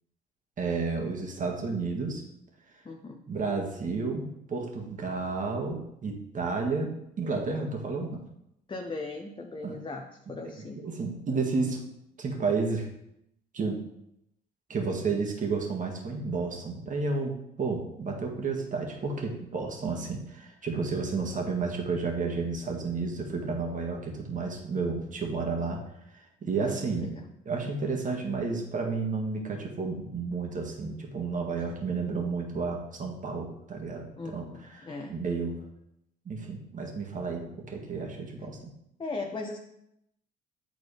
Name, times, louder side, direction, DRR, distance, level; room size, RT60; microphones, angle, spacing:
voice 1, 0.6-2.2 3.3-6.9 7.2-8.2 9.6-9.8 10.6-11.8 12.2-12.9 13.5-13.8 14.7-25.8 26.1-27.1 27.5-35.6 36.3-38.7, right 4 dB, 40° right, 1 dB, 1.8 m, -31 dB
voice 2, 2.8-3.2 8.7-10.8 26.6-27.3 34.2-35.2 39.0-39.6, left 3 dB, 25° left, 2 dB, 0.8 m, -38 dB
9.2 x 4.0 x 3.4 m, 0.79 s
hypercardioid pair, 60°, 20 cm